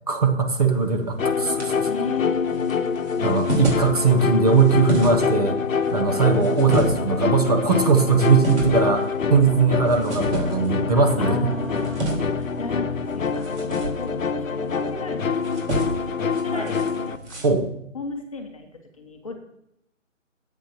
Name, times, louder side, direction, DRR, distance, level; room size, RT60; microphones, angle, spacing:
voice 1, 0.1-1.9 3.2-5.6 5.9-11.5 17.4-17.7, right 4 dB, 30° right, 4 dB, 1.0 m, -20 dB
sound 1, 0.6-17.5, right 1 dB, 60° right, 4.1 m, -32 dB
sound 2, 1.2-17.2, left 6 dB, 80° left, 0.9 m, -26 dB
voice 2, 1.9-2.9 6.1-6.3 11.2-12.0 12.3-13.6 14.0-14.1 14.4-15.2 15.5-15.9 16.2-17.4 17.9-18.7 19.0-19.3, left 4 dB, 25° left, 3 dB, 1.0 m, -34 dB
18.0 x 8.2 x 3.0 m, 0.76 s
hypercardioid pair, 165°, 39 cm